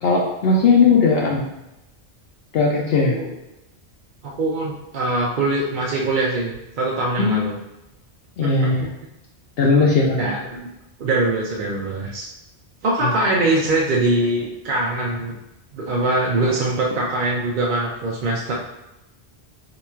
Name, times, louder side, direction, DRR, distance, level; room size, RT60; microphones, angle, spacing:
voice 1, 0.0-1.5 2.5-3.2 7.2-7.6 8.4-8.9 9.6-10.3 13.0-13.1, left 4 dB, 70° left, -2 dB, 0.7 m, -18 dB
voice 2, 3.0-3.3 4.2-7.5 8.4-8.7 10.2-10.7 11.0-12.3 12.8-15.3 15.7-18.5, right 2 dB, 55° right, -3 dB, 0.6 m, -22 dB
2.9 x 2.4 x 4.2 m, 0.94 s
omnidirectional pair, 1.1 m